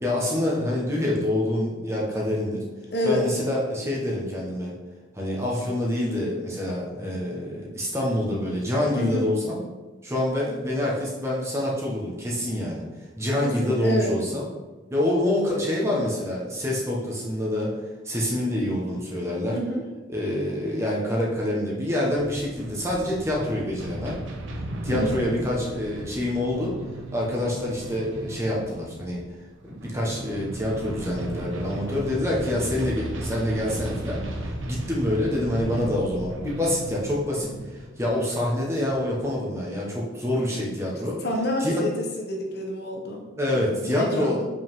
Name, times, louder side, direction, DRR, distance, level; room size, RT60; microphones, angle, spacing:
voice 1, 0.0-2.6 3.0-4.7 5.1-9.6 10.0-12.8 13.2-14.5 14.9-17.7 18.0-19.6 20.1-24.2 24.8-26.7 27.1-29.2 29.6-41.2 41.6-41.8 43.4-44.4, left 1 dB, 15° right, -4 dB, 1.3 m, -26 dB
voice 2, 2.9-3.2 8.9-9.2 13.4-14.1 19.5-19.8 24.9-25.2 41.2-41.9 42.2-43.2 43.8-44.5, left 1 dB, 55° left, 1 dB, 1.1 m, -28 dB
sound 1, 22.1-39.7, right 1 dB, 80° right, 1.1 m, -35 dB
7.4 x 5.4 x 3.7 m, 1.2 s
head